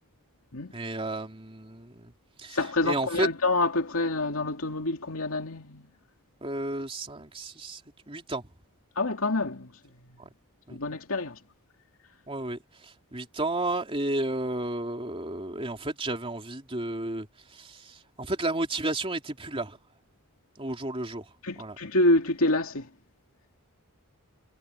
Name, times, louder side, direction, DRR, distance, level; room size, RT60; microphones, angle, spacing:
voice 1, 0.7-2.1 2.4-2.6 2.8-3.3 6.4-7.8 8.1-8.5 10.2-10.3 10.7-10.8 12.3-17.3 17.5-19.8 20.6-21.2 21.6-21.8, right 2 dB, 25° right, 3.2 m, -32 dB
voice 2, 2.5-5.9 9.0-9.7 10.7-11.4 21.4-22.9, left 2 dB, 70° left, 2.7 m, -27 dB
head